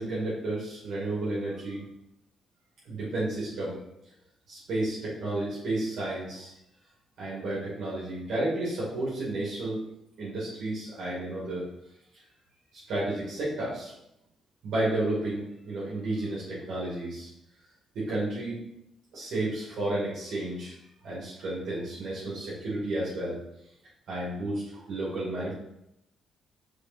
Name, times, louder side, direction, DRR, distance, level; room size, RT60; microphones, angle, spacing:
voice 1, 0.0-1.8 2.8-3.7 4.5-6.5 7.2-9.8 10.2-11.7 12.9-13.9 14.6-17.3 17.9-18.6 19.1-20.7 21.0-23.4 24.1-25.5, right 2 dB, 70° right, -7 dB, 2.5 m, -32 dB
5.0 x 4.8 x 4.5 m, 0.82 s
cardioid pair, 90°, 0 cm